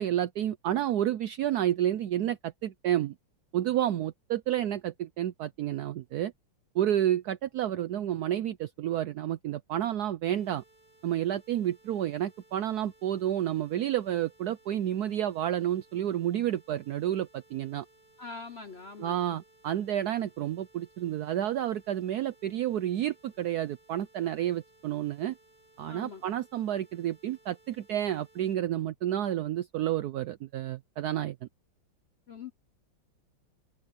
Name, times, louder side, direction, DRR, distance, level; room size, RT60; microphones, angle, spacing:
voice 1, 0.0-3.1 3.5-6.3 6.7-10.6 11.0-17.8 19.0-25.4 25.8-31.5, right 11 dB, 75° right, 0.9 m, -30 dB
sound 1, 10.3-28.6, right 2 dB, 25° right, 7.3 m, -62 dB
voice 2, 18.2-19.4 25.9-26.2 32.3-32.5, left 4 dB, 60° left, 0.6 m, -43 dB
omnidirectional pair, 2.4 m